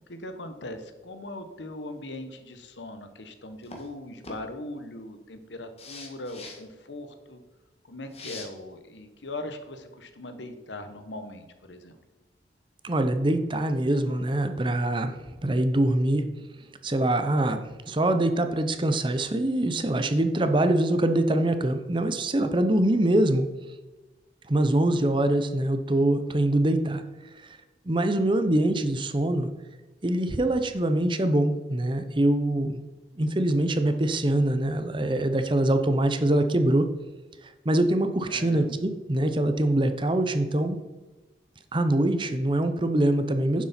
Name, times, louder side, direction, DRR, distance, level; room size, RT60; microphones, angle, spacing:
voice 1, 0.1-7.4 7.8-12.0 38.3-38.8, left 1 dB, 85° left, 8 dB, 1.2 m, -40 dB
sound 1, 3.6-3.9 4.2-4.4 5.8-6.6 8.1-8.4, left 3 dB, 35° left, 1.6 m, -41 dB
voice 2, 12.8-16.3 16.8-23.7 24.5-27.0 27.4-27.6 27.8-29.5 30.0-32.8 33.2-36.9 37.4-40.8 41.7-43.6, right 1 dB, 25° right, 8 dB, 0.7 m, -24 dB
9.7 x 7.4 x 4.3 m, 1.2 s
head